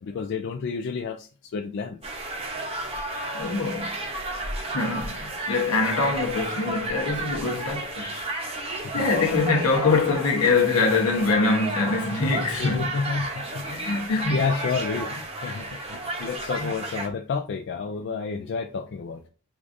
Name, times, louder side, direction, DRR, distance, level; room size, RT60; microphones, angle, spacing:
voice 1, 0.0-2.0 8.8-9.1 12.6-13.7 14.1-19.3, left 5 dB, 55° left, 0.3 m, -30 dB
sound 1, 2.0-17.1, right 2 dB, 25° right, 0.7 m, -32 dB
voice 2, 3.4-3.9 4.6-8.2 8.9-12.9 13.7-14.3 16.6-16.7, left 4 dB, 80° left, 1.0 m, -24 dB
4.7 x 2.4 x 2.6 m
head